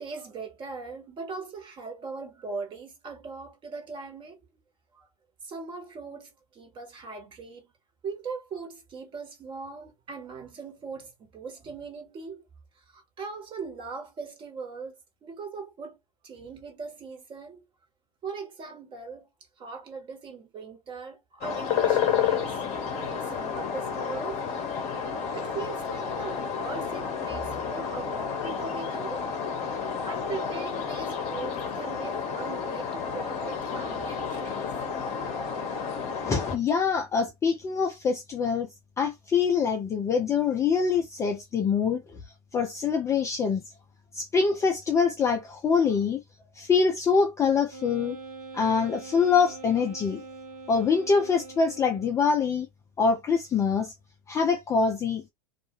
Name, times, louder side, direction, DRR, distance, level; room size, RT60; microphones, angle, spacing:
voice 1, 0.0-4.4 4.9-5.1 5.4-7.7 8.0-12.5 12.7-14.9 15.2-16.0 16.2-17.6 18.2-19.3 19.6-24.4 25.3-29.3 30.0-34.6, right 4 dB, 25° right, 1.2 m, -40 dB
sound 1, 21.4-36.6, left 7 dB, 35° left, 0.8 m, -31 dB
voice 2, 36.2-38.7 39.0-42.0 42.5-43.6 44.1-46.2 46.6-48.2 48.5-50.2 50.7-52.7 53.0-53.9 54.3-55.2, left 5 dB, 15° left, 0.4 m, -24 dB
Wind instrument woodwind instrument, 47.7-52.3, right 3 dB, 65° right, 0.9 m, -44 dB
2.3 x 2.2 x 3.0 m
figure-of-eight pair, 95°, 19 cm